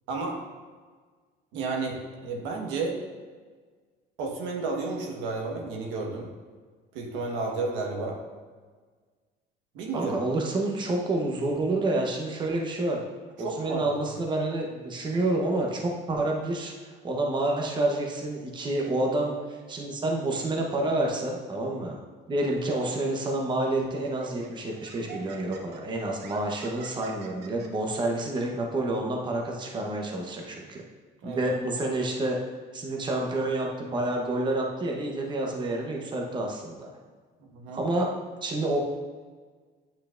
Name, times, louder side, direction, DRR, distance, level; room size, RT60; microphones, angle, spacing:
voice 1, 0.1-0.4 1.5-3.0 4.2-6.3 6.9-8.2 9.7-10.1 13.4-13.9 31.2-31.4 37.4-37.8, right 3 dB, 85° right, 0 dB, 1.4 m, -32 dB
voice 2, 9.9-13.0 13.4-22.0 22.3-30.8 31.2-32.4 32.7-36.9 37.7-38.1 38.4-38.8, right 2 dB, 25° right, 0 dB, 0.9 m, -28 dB
Laughter, 23.2-23.4 24.0-27.7, right 6 dB, 65° right, 0.9 m, -47 dB
8.9 x 5.5 x 2.5 m, 1.5 s
cardioid pair, 130°, 19 cm